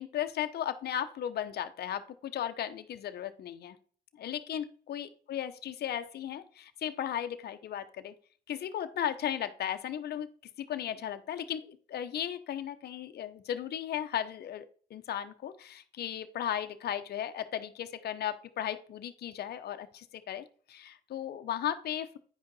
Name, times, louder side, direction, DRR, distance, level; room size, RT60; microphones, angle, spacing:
voice 1, 0.0-3.8 4.2-8.1 8.5-10.3 10.6-22.2, left 10 dB, 65° left, 8 dB, 0.8 m, -36 dB
9.3 x 5.2 x 4.0 m, 0.44 s
supercardioid pair, 65°, 18 cm